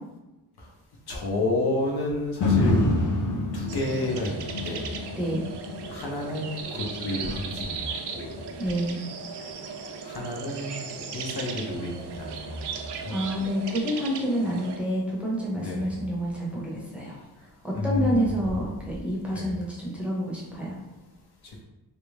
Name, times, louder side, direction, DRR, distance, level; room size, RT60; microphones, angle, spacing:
voice 1, 1.1-2.8 3.5-4.9 5.9-8.3 10.0-10.9 11.1-12.6 13.0-13.2 15.6-16.0 17.7-18.4 19.3-19.5, left 1 dB, 70° left, -2 dB, 0.8 m, -30 dB
sound 1, 2.4-10.6 11.0-11.1, left 2 dB, 50° left, 0.5 m, -29 dB
sound 2, 3.7-14.8, right 5 dB, 75° right, 0.5 m, -37 dB
voice 2, 5.2-5.5 8.6-9.0 13.1-17.2 17.6-20.8, equal, 5° right, -5 dB, 0.7 m, -28 dB
3.1 x 2.6 x 3.3 m, 1.0 s
wide cardioid pair, 160°, 40 cm